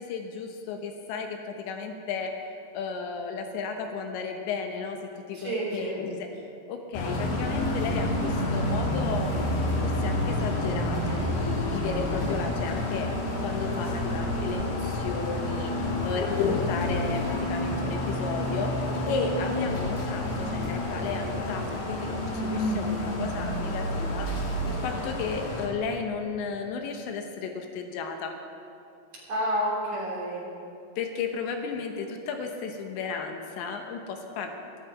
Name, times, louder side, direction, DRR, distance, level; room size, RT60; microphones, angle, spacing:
voice 1, 0.0-5.0 5.3-6.3 6.7-13.1 13.4-24.3 24.7-28.4 31.0-34.5, left 5 dB, 80° left, 4 dB, 3.1 m, -33 dB
voice 2, 5.3-6.0 16.1-16.5 29.1-30.5, right 1 dB, 40° right, -6 dB, 4.1 m, -30 dB
sound 1, 6.9-25.7, left 1 dB, 60° left, 3.5 m, -29 dB
15.5 x 13.0 x 4.8 m, 2.6 s
omnidirectional pair, 5.3 m